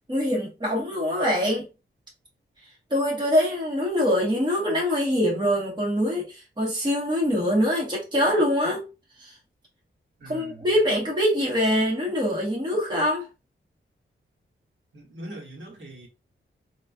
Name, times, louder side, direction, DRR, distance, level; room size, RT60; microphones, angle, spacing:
voice 1, 0.1-1.7 2.9-8.8 9.2-9.3 10.3-13.3, equal, 20° right, 1.4 m, -24 dB
voice 2, 10.2-10.7 14.9-16.1, right 1 dB, 70° right, 1.2 m, -41 dB
3.9 x 2.4 x 2.4 m
wide cardioid pair, 145°, 21 cm